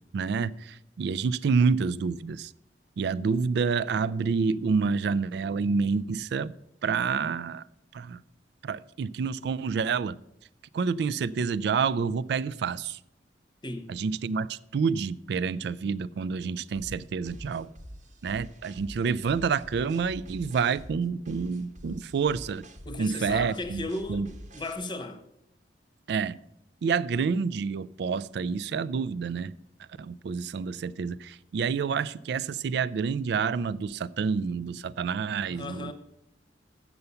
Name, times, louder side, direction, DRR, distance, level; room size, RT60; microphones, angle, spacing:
voice 1, 0.1-2.5 3.0-6.5 6.8-7.6 7.9-8.2 8.6-10.2 10.7-13.0 13.9-17.7 18.2-22.6 23.0-24.3 26.1-26.4 26.8-29.5 30.0-35.9, right 5 dB, 65° right, 0.3 m, -28 dB
sound 1, 16.8-24.8, equal, 45° right, 1.0 m, -46 dB
voice 2, 22.8-25.2 35.4-35.9, left 2 dB, 25° left, 0.9 m, -36 dB
7.9 x 6.9 x 6.8 m
head